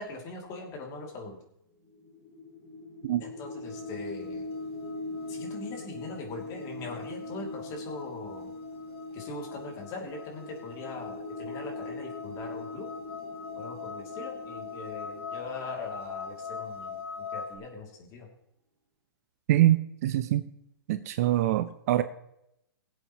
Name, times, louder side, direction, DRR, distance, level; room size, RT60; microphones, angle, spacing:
voice 1, 0.0-1.4 3.2-4.5 5.3-8.5 9.1-12.9 13.6-18.3, left 3 dB, 25° left, 1 dB, 2.6 m, -41 dB
sound 1, 1.8-16.9, left 2 dB, 5° left, 2.0 m, -41 dB
sound 2, 3.6-17.6, left 6 dB, 80° left, 2.4 m, -43 dB
voice 2, 19.5-20.4 20.9-22.0, right 14 dB, 40° right, 11 dB, 0.6 m, -24 dB
21.0 x 8.1 x 3.0 m, 0.80 s
hypercardioid pair, 145°, 13 cm